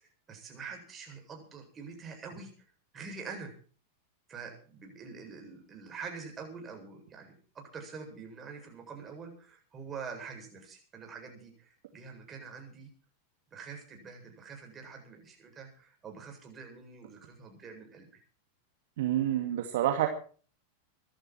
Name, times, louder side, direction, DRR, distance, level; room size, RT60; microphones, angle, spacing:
voice 1, 0.0-2.5 2.9-3.5 4.3-12.9 13.5-18.2, right 5 dB, 20° right, 2 dB, 7.9 m, -45 dB
voice 2, 19.0-20.1, right 12 dB, 55° right, 5 dB, 2.2 m, -28 dB
25.5 x 11.5 x 4.7 m, 0.41 s
figure-of-eight pair, 90°, 0 cm